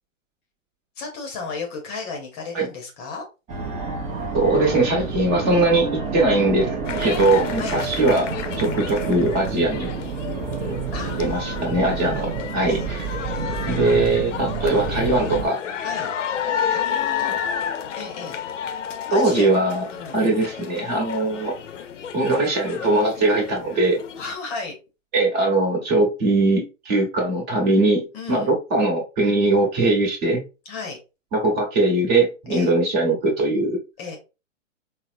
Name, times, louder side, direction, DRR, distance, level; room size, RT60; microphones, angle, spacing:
voice 1, 1.0-3.2 7.6-7.8 8.5-8.6 10.9-11.5 12.7-12.9 15.8-16.1 16.7-17.6 17.9-18.4 19.1-19.5 19.9-20.4 24.2-24.7 28.1-28.5 30.7-31.0 32.5-32.7 34.0-34.2, left 4 dB, 30° left, 2 dB, 0.7 m, -34 dB
Fixed-wing aircraft airplane, 3.5-15.5, right 5 dB, 15° right, 0.7 m, -29 dB
voice 2, 4.3-8.3 8.6-9.9 10.7-10.8 11.2-13.1 13.7-15.6 17.2-17.3 19.1-19.8 20.1-21.5 22.1-24.0 25.1-30.4 31.3-33.8, right 2 dB, 35° right, 0 dB, 1.2 m, -21 dB
sound 1, 6.8-24.3, left 8 dB, 70° left, 0.6 m, -31 dB
3.9 x 2.0 x 2.5 m, 0.29 s
hypercardioid pair, 120°, 39 cm